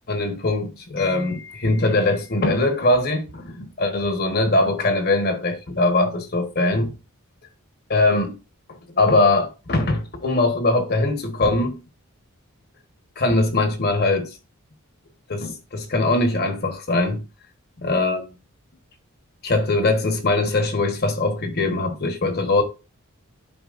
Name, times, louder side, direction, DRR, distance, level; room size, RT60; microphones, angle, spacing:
voice 1, 0.1-6.9 7.9-8.3 8.9-11.8 13.2-14.3 15.3-17.2 17.8-18.3 19.4-22.6, left 2 dB, 45° left, 1.2 m, -21 dB
11.0 x 4.6 x 2.5 m
head